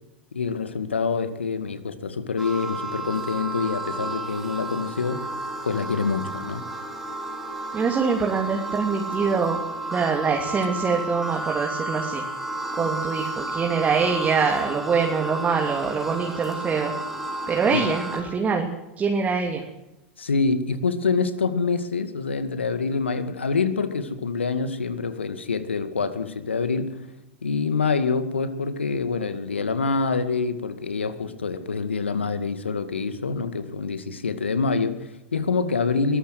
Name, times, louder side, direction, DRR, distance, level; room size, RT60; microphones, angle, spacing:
voice 1, 0.3-5.2 5.6-6.6 12.8-12.9 17.7-17.9 20.2-27.0 27.4-36.2, left 4 dB, 85° left, 11 dB, 2.1 m, -26 dB
sound 1, 2.4-18.2, right 2 dB, 5° right, 6.3 m, -32 dB
voice 2, 7.7-9.6 9.9-12.2 12.8-16.9 17.5-18.7 19.0-19.6, right 5 dB, 25° right, 2 dB, 2.9 m, -24 dB
23.0 x 14.5 x 7.9 m, 0.94 s
hypercardioid pair, 95°, 6 cm